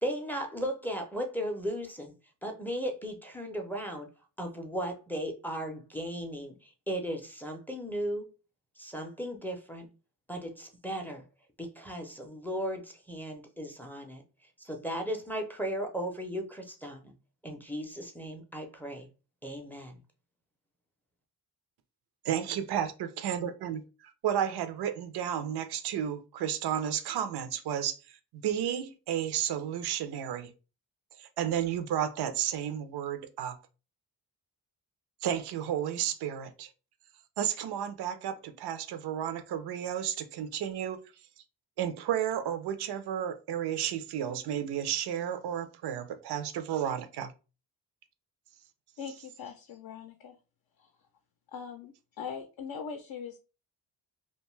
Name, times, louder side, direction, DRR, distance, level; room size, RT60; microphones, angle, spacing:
voice 1, 0.0-2.1 2.4-4.1 4.4-8.2 8.8-9.9 10.3-11.2 11.6-14.2 14.6-17.1 17.4-19.1 19.4-20.0, equal, 5° left, 0.4 m, -36 dB
voice 2, 22.2-28.0 28.3-30.5 31.2-33.6 35.2-36.7 37.4-41.0 41.8-47.3, right 9 dB, 75° right, 0.5 m, -32 dB
voice 3, 49.0-50.3 50.8-50.9 51.5-51.9 52.2-53.4, left 6 dB, 65° left, 0.5 m, -41 dB
2.5 x 2.3 x 3.0 m
cardioid pair, 110°, 40 cm